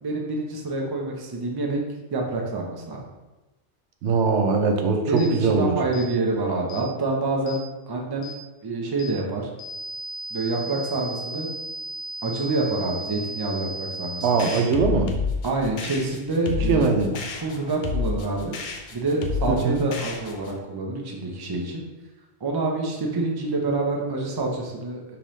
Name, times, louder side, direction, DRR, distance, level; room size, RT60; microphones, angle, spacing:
voice 1, 0.0-1.8 2.1-3.0 5.1-8.3 8.6-9.4 10.3-11.5 12.2-14.5 15.4-16.9 17.4-18.6 18.9-21.8 22.4-25.2, right 2 dB, 30° right, 0 dB, 0.5 m, -27 dB
voice 2, 4.0-5.7 14.2-15.1 16.7-17.1 19.5-19.8, right 4 dB, 85° right, 4 dB, 0.9 m, -21 dB
sound 1, 5.2-5.3 5.9-6.1 6.7-6.9 7.5-7.6 8.2-8.4 9.0-9.2 9.6-14.6, right 1 dB, 80° left, 0.9 m, -35 dB
sound 2, 14.4-20.6, left 4 dB, 55° left, 0.6 m, -30 dB
5.3 x 2.9 x 3.1 m, 1.1 s
omnidirectional pair, 1.1 m